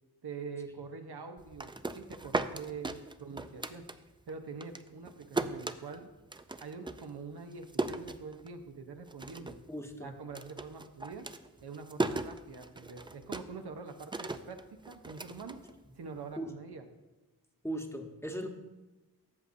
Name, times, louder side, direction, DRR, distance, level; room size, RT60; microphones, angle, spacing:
voice 1, 0.2-1.7 1.9-3.9 4.3-6.1 6.6-9.6 10.0-11.3 11.6-14.6 14.8-15.6 16.0-16.8, right 5 dB, 85° right, 5 dB, 0.8 m, -45 dB
sound 1, 1.4-4.3 4.6-8.7 9.1-9.7 9.9-16.2, right 2 dB, 15° right, 0.3 m, -38 dB
voice 2, 9.7-10.1 16.4-16.5 17.6-18.5, right 1 dB, 5° left, 3 dB, 1.0 m, -38 dB
13.0 x 6.8 x 2.6 m, 1.1 s
cardioid pair, 40°, 38 cm